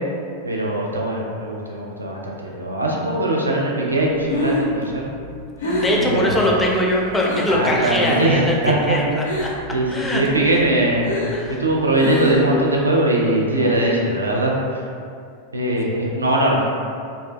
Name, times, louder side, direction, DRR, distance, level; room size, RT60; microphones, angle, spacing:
voice 1, 0.4-5.0 5.9-6.4 7.5-9.0 9.7-11.0 11.5-14.8 15.5-16.6, right 1 dB, 80° right, -3 dB, 0.3 m, -21 dB
Breathing, 4.0-7.6 8.0-8.4 8.7-9.7 10.1-12.6, left 1 dB, 65° left, 0.5 m, -27 dB
voice 2, 5.6-9.2 9.9-10.2 11.3-11.6, left 1 dB, 10° left, -3 dB, 0.4 m, -21 dB
2.4 x 2.1 x 2.5 m, 2.3 s
figure-of-eight pair, 90°, 0 cm